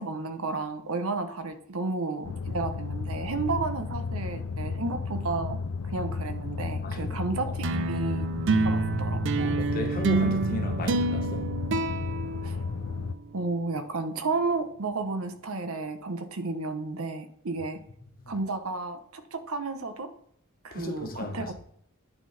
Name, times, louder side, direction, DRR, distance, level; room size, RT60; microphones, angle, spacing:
voice 1, 0.0-5.6 5.9-8.3 8.6-9.6 12.4-12.6 13.3-17.8 18.3-20.1 20.6-21.6, right 3 dB, 80° right, 0.8 m, -32 dB
sound 1, 2.2-13.1, left 4 dB, 80° left, 0.4 m, -33 dB
voice 2, 6.8-7.5 9.6-11.5 18.2-18.3 20.7-21.6, left 1 dB, 45° left, 1.0 m, -36 dB
sound 2, 7.6-13.2, right 3 dB, 60° right, 0.5 m, -28 dB
9.0 x 3.9 x 4.0 m
head